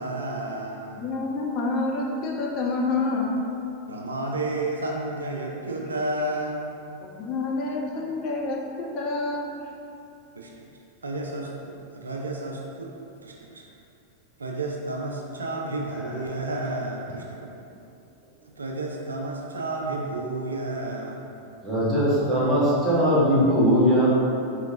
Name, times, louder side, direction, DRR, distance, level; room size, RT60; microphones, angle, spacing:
voice 1, 0.0-1.1 3.9-6.9 10.4-10.7 11.0-12.9 13.2-13.7 14.4-17.5 18.6-21.3, right 2 dB, 75° right, 0 dB, 0.3 m, -31 dB
voice 2, 1.0-3.3 7.0-9.5, left 3 dB, 40° left, -1 dB, 0.4 m, -28 dB
voice 3, 21.6-24.1, equal, 10° right, -9 dB, 1.1 m, -20 dB
4.1 x 2.8 x 2.6 m, 2.6 s
figure-of-eight pair, 90°, 0 cm